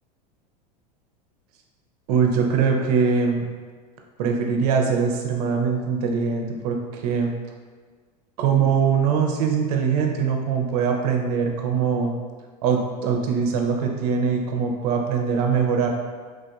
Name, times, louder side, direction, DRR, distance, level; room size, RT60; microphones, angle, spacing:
voice 1, 2.1-3.5 4.2-7.3 8.4-12.1 12.6-15.9, right 6 dB, 65° right, 2 dB, 0.5 m, -22 dB
3.2 x 2.6 x 2.2 m, 1.5 s
hypercardioid pair, 105°, 21 cm